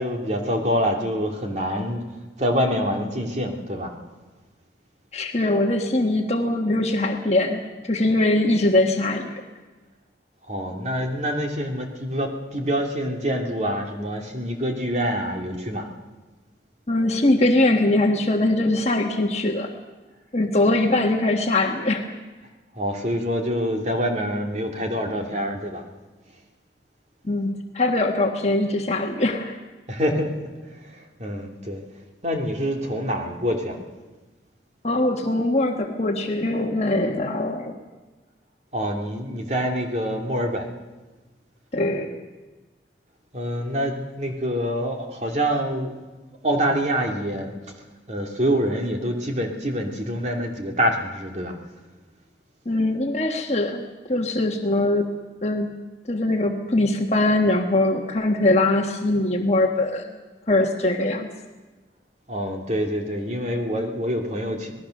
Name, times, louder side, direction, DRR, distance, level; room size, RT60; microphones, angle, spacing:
voice 1, 0.0-2.1 2.4-3.9 10.5-15.9 22.8-25.8 29.9-31.8 32.2-33.8 38.7-40.7 43.3-45.9 46.4-47.8 48.1-51.6 62.3-64.7, equal, 40° right, 2 dB, 2.7 m, -26 dB
voice 2, 5.1-9.3 16.9-19.8 20.3-22.2 27.2-29.5 34.8-37.8 41.7-42.2 52.6-55.1 55.4-55.7 56.1-60.2 60.5-61.3, left 2 dB, 35° left, 3 dB, 1.5 m, -22 dB
26.0 x 19.0 x 6.6 m, 1.2 s
head